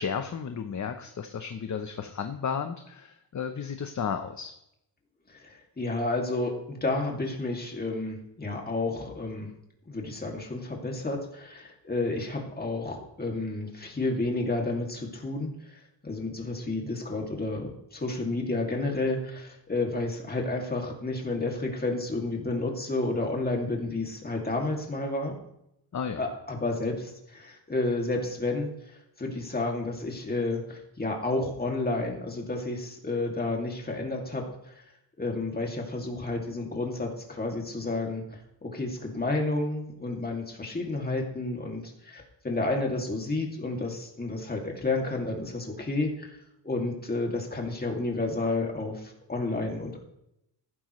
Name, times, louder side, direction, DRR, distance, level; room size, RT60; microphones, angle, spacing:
voice 1, 0.0-4.5 25.9-26.2, left 6 dB, 40° left, 6 dB, 0.8 m, -33 dB
voice 2, 5.3-9.5 9.9-25.4 26.2-28.7 29.2-34.7 35.2-38.2 38.6-46.3 46.6-50.0, left 2 dB, 20° left, 0 dB, 2.5 m, -31 dB
14.5 x 11.5 x 3.2 m, 0.79 s
wide cardioid pair, 145°, 44 cm